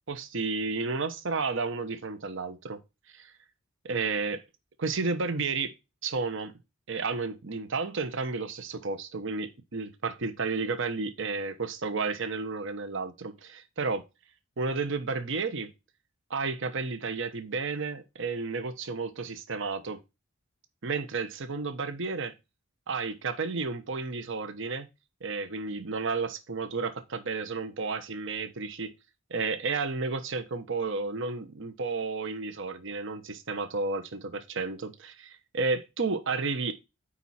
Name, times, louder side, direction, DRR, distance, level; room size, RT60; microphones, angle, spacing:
voice 1, 0.1-2.8 3.1-3.3 3.8-4.4 4.8-5.7 6.0-6.5 6.9-14.0 14.6-15.7 16.3-20.0 20.8-22.3 22.9-24.9 25.2-28.9 29.3-36.7, right 4 dB, 65° right, 1.0 m, -32 dB
9.0 x 4.3 x 4.2 m
head